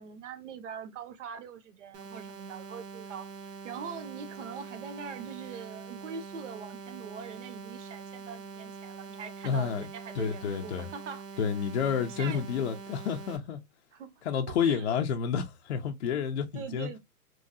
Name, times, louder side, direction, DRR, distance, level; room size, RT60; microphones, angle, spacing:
voice 1, 0.0-3.3 3.6-11.4 11.8-12.4 13.9-14.9 16.5-17.0, right 6 dB, 50° right, 0.7 m, -43 dB
sound 1, 1.9-13.4, right 5 dB, 85° right, 1.0 m, -44 dB
voice 2, 9.4-9.9 10.1-10.9 11.4-13.6 14.2-16.9, left 7 dB, 45° left, 0.5 m, -30 dB
3.1 x 2.6 x 2.3 m
hypercardioid pair, 155°, 47 cm